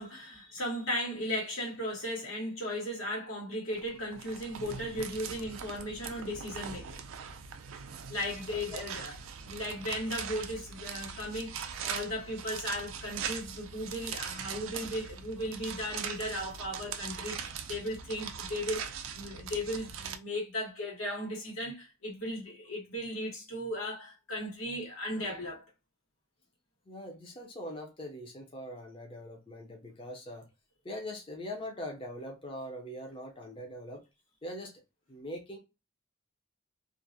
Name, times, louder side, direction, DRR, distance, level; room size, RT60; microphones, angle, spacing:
voice 1, 0.0-7.0 8.1-9.2 9.4-25.6, left 1 dB, 80° left, 1.2 m, -36 dB
sound 1, 3.7-20.2, right 7 dB, 70° right, 0.3 m, -41 dB
voice 2, 8.5-8.8 26.9-30.5 30.8-34.0 34.4-34.7 35.1-35.6, left 1 dB, 25° left, 0.5 m, -42 dB
2.4 x 2.0 x 2.6 m
head